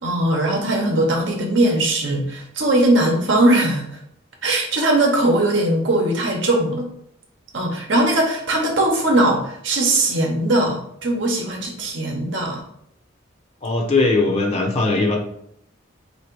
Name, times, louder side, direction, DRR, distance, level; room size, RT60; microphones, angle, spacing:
voice 1, 0.0-3.9 4.4-6.9 7.5-12.6, right 1 dB, 65° right, 1 dB, 0.8 m, -20 dB
voice 2, 13.6-15.2, left 3 dB, 30° left, 1 dB, 0.7 m, -19 dB
3.7 x 2.8 x 4.5 m, 0.71 s
head